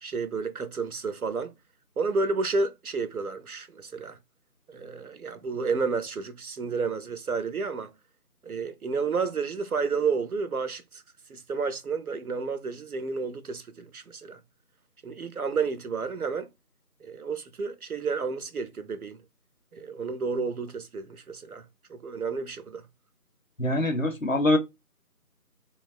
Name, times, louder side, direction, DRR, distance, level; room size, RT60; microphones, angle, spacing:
voice 1, 0.0-1.5 2.0-4.2 4.7-7.9 8.4-11.0 11.3-14.4 15.0-16.5 17.0-19.2 19.7-22.9, right 4 dB, 65° right, 0.5 m, -31 dB
voice 2, 23.6-24.6, left 1 dB, 55° left, 0.7 m, -24 dB
3.4 x 2.3 x 2.2 m
figure-of-eight pair, 175°, 47 cm